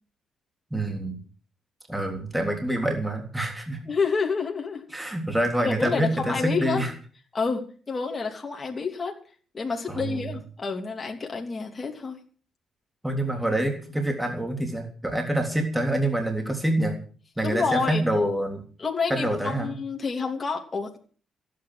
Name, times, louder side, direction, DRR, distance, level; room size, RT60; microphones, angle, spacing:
voice 1, 0.7-1.1 1.9-3.8 4.9-6.9 9.9-10.2 13.0-16.9 17.4-18.6 19.1-19.8, right 1 dB, 5° right, 3 dB, 3.4 m, -26 dB
voice 2, 3.9-4.8 5.6-6.8 7.3-9.2 9.5-12.2 17.4-18.0 18.8-21.0, left 5 dB, 30° left, 1 dB, 3.0 m, -28 dB
16.0 x 9.3 x 7.7 m, 0.41 s
cardioid pair, 90°, 0 cm